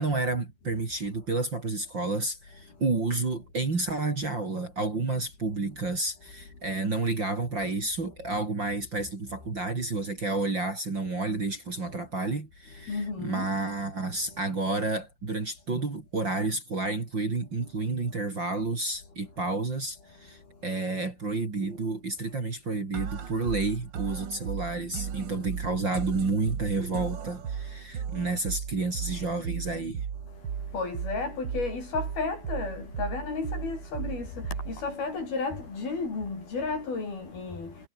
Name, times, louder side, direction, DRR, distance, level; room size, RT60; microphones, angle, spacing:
voice 1, 0.0-30.1, right 3 dB, 30° right, 3.6 m, -30 dB
voice 2, 12.9-13.5 30.7-37.9, left 4 dB, 70° left, 9.7 m, -33 dB
sound 1, 22.9-34.9, right 7 dB, 55° right, 1.3 m, -36 dB
omnidirectional pair, 4.6 m